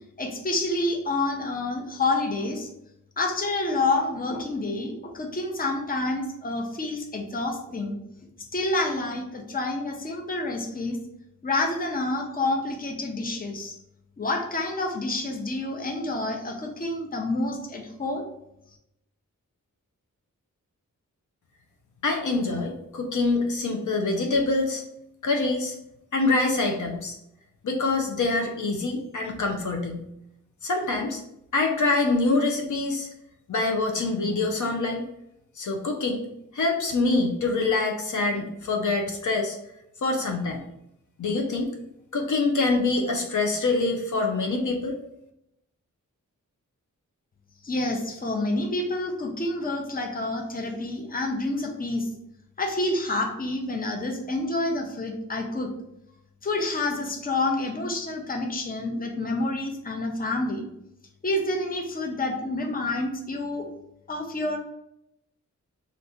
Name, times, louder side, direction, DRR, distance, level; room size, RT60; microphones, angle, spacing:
voice 1, 0.2-2.7 3.2-8.0 8.5-11.0 11.4-13.8 14.2-18.2 47.6-52.1 52.6-55.7 56.4-60.7 61.2-63.7 64.1-64.6, left 2 dB, 25° left, 2 dB, 0.6 m, -28 dB
voice 2, 22.0-24.8 25.2-25.8 26.1-27.2 27.6-30.0 30.6-31.2 31.5-33.1 33.5-35.1 35.6-36.3 36.5-39.6 40.0-40.6 41.2-41.7 42.1-45.0, left 3 dB, 65° left, 2 dB, 0.6 m, -25 dB
2.8 x 2.5 x 3.5 m, 0.81 s
wide cardioid pair, 70°, 32 cm